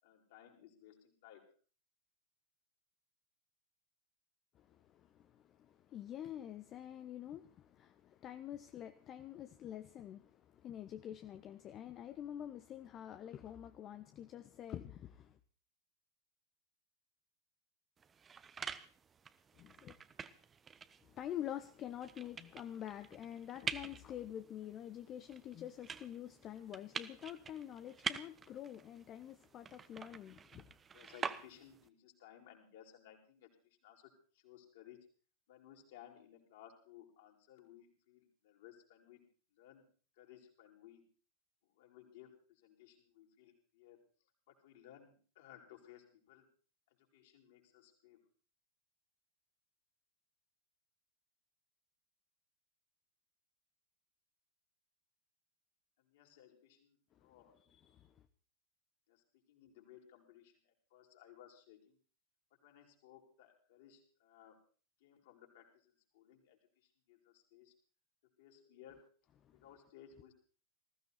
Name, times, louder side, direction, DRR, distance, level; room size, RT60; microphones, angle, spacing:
voice 1, 0.0-1.5 30.9-35.1 35.5-39.2 39.5-39.9 40.2-41.1 41.6-44.0 44.5-46.5 46.9-48.2 56.0-57.6 59.1-62.0 62.6-64.6 65.0-67.7 68.4-69.1 69.5-70.3, left 10 dB, 55° left, 1 dB, 5.7 m, -60 dB
voice 2, 4.5-15.4 19.5-20.0 21.0-30.7 57.2-57.3 57.7-58.3 69.4-69.6, left 11 dB, 30° left, 9 dB, 1.2 m, -47 dB
sound 1, 18.0-31.9, right 6 dB, 20° right, 1.2 m, -47 dB
20.5 x 16.0 x 4.4 m, 0.40 s
figure-of-eight pair, 90°, 0 cm